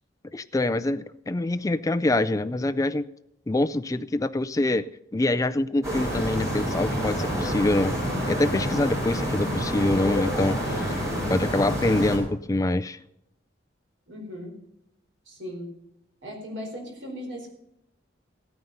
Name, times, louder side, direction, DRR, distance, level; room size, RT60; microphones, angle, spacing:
voice 1, 0.3-3.0 3.5-7.9 8.3-11.0 11.3-13.0, left 2 dB, 20° left, 11 dB, 0.4 m, -25 dB
sound 1, 5.8-12.2, equal, 15° right, 5.9 m, -28 dB
voice 2, 14.1-14.5 15.2-15.7 16.2-17.5, equal, 70° right, 2 dB, 4.5 m, -37 dB
15.5 x 9.6 x 5.4 m, 0.81 s
head